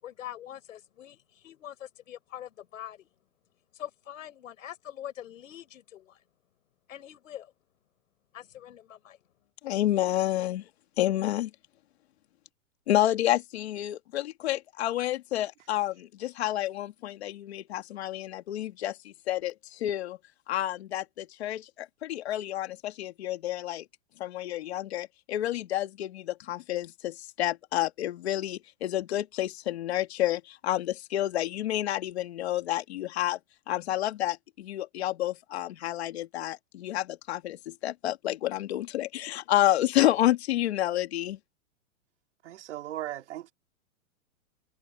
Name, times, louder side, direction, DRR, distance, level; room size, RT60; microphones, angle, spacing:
voice 1, 0.0-3.1 3.7-6.2 6.9-7.5 8.3-9.2, left 11 dB, 75° left, 6.4 m, -44 dB
voice 2, 9.6-10.7 11.0-11.5 12.9-20.2 20.5-23.9 24.2-33.4 33.7-41.4, left 13 dB, 50° left, 1.9 m, -29 dB
voice 3, 42.4-43.5, right 13 dB, 60° right, 3.0 m, -37 dB
supercardioid pair, 175°, 40 cm